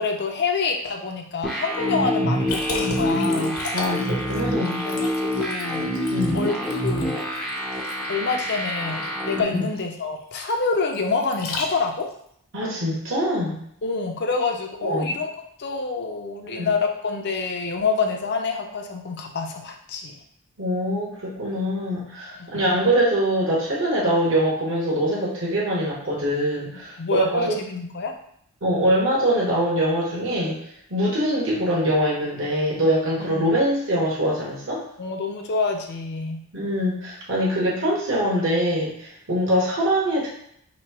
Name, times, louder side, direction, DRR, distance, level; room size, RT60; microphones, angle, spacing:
voice 1, 0.0-3.6 4.8-5.9 6.3-7.2 8.1-12.1 13.8-15.3 15.6-20.2 22.4-22.6 27.0-28.1 33.2-33.5 35.0-36.4, left 4 dB, 50° left, 3 dB, 0.6 m, -27 dB
sound 1, 1.4-9.4, equal, ahead, 0.5 m, -26 dB
Liquid, 2.5-12.1, left 3 dB, 70° left, 1.0 m, -36 dB
voice 2, 3.7-4.9 6.1-6.5 9.4-9.6 12.5-13.6 14.8-15.1 16.4-16.7 20.6-27.0 27.3-27.6 28.6-30.6 30.9-34.8 36.5-40.3, equal, 55° right, -5 dB, 1.1 m, -23 dB
3.2 x 3.0 x 4.6 m, 0.70 s
head